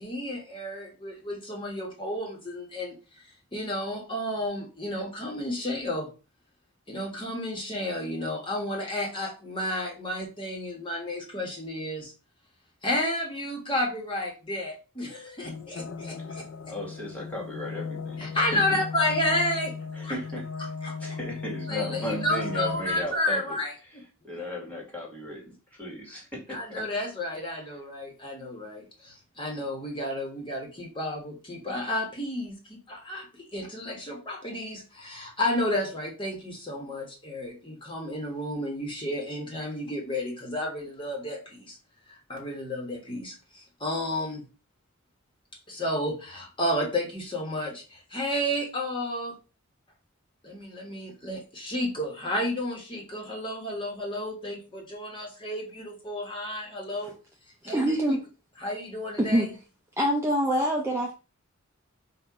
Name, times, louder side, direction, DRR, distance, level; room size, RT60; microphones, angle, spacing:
voice 1, 0.0-3.2 3.5-6.1 6.9-12.1 12.8-16.4 18.2-19.8 20.0-20.1 20.8-21.0 21.7-24.0 26.5-41.8 42.1-44.4 45.7-49.4 50.4-57.1 57.6-57.9 58.6-59.5, left 1 dB, 25° left, 0 dB, 1.4 m, -32 dB
sound 1, 15.4-23.2, left 5 dB, 60° left, 0.4 m, -36 dB
voice 2, 16.7-18.8 19.9-20.5 21.0-23.6 23.8-26.9, equal, 5° left, -2 dB, 1.7 m, -36 dB
voice 3, 57.7-58.2 59.2-59.5 60.0-61.2, equal, 10° right, -1 dB, 0.6 m, -24 dB
4.2 x 2.6 x 4.8 m, 0.32 s
head